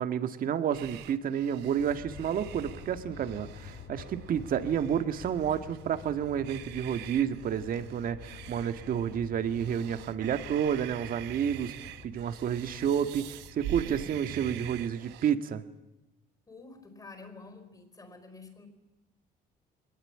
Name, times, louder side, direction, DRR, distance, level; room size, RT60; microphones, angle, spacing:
voice 1, 0.0-15.6, right 8 dB, 55° right, 10 dB, 1.8 m, -30 dB
sound 1, 0.7-15.3, right 13 dB, 90° right, 1.1 m, -45 dB
Aircraft, 1.8-14.6, left 8 dB, 75° left, 2.0 m, -49 dB
voice 2, 16.5-18.7, left 3 dB, 20° left, 9 dB, 4.7 m, -49 dB
22.5 x 19.5 x 9.9 m, 1.0 s
cardioid pair, 110°, 17 cm